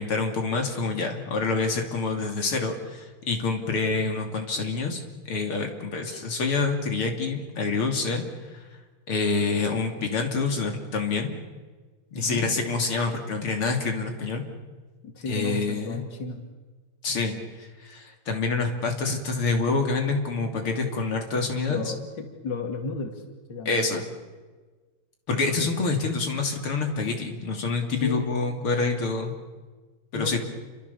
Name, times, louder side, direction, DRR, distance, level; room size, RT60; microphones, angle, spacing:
voice 1, 0.0-5.0 5.3-8.6 9.1-11.3 12.1-14.4 15.3-16.0 17.0-21.8 23.7-24.0 25.3-29.3 30.1-30.4, left 4 dB, 85° left, 3 dB, 3.8 m, -27 dB
voice 2, 15.0-16.4 21.7-23.1 23.5-24.0 25.6-25.7 28.0-28.3 30.1-30.4, left 3 dB, 55° left, 4 dB, 3.3 m, -33 dB
29.5 x 25.5 x 7.1 m, 1.3 s
omnidirectional pair, 2.3 m